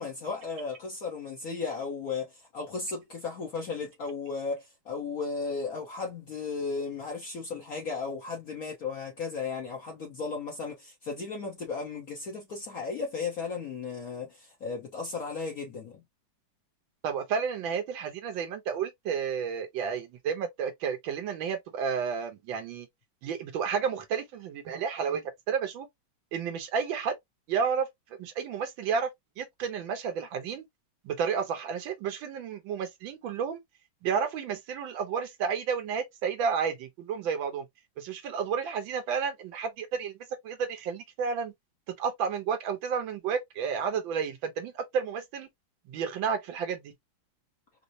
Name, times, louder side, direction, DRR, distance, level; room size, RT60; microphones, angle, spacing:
voice 1, 0.0-16.0, left 4 dB, 55° left, 1.1 m, -35 dB
voice 2, 17.0-22.9 23.2-25.9 26.3-27.1 27.5-27.9 28.2-29.1 29.4-30.6 31.0-33.6 34.0-37.7 38.0-40.1 40.4-41.5 42.0-45.5 45.9-46.9, right 6 dB, 80° right, 1.5 m, -31 dB
4.5 x 2.0 x 2.6 m
omnidirectional pair, 2.1 m